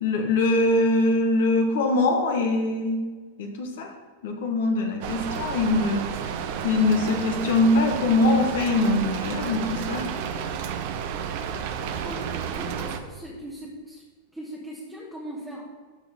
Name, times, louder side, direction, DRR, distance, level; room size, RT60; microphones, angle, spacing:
voice 1, 0.0-3.1 3.4-3.9 4.2-6.0 6.6-10.1, left 2 dB, 55° left, 3 dB, 1.1 m, -22 dB
Rain, 5.0-13.0, right 7 dB, 50° right, 0.7 m, -31 dB
voice 2, 11.8-14.0 14.3-15.6, equal, 5° right, -5 dB, 1.4 m, -39 dB
12.0 x 4.0 x 5.5 m, 1.4 s
figure-of-eight pair, 90°, 0 cm